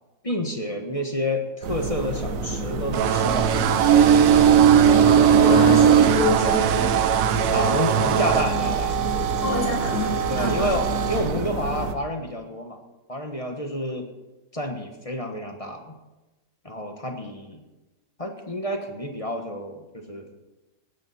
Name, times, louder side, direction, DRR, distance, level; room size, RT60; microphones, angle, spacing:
voice 1, 0.2-3.5 5.5-5.7 7.5-9.0 10.3-12.8 13.1-14.1 14.5-15.9 16.6-17.6 18.2-20.3, equal, 20° left, 4 dB, 1.2 m, -29 dB
sound 1, 1.6-11.9, right 7 dB, 55° right, 1.2 m, -21 dB
sound 2, 2.9-8.5, right 9 dB, 80° right, 1.5 m, -23 dB
voice 2, 4.8-7.0 7.5-7.6 9.4-10.7, left 2 dB, 60° left, -4 dB, 5.7 m, -27 dB
18.0 x 12.5 x 4.3 m, 1.1 s
omnidirectional pair, 2.0 m